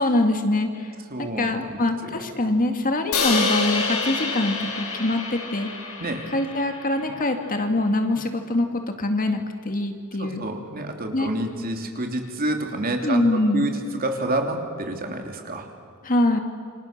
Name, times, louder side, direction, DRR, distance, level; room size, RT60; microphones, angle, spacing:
voice 1, 0.0-0.9 1.2-5.7 6.3-8.7 9.0-10.4 11.1-11.3 13.0-13.7 16.0-16.4, left 2 dB, 40° left, 5 dB, 2.2 m, -24 dB
voice 2, 1.1-2.2 6.0-6.3 10.2-15.7, right 1 dB, 40° right, 3 dB, 3.1 m, -29 dB
Crash cymbal, 3.1-7.3, left 4 dB, 90° left, 6.3 m, -27 dB
28.0 x 26.0 x 6.8 m, 2.1 s
head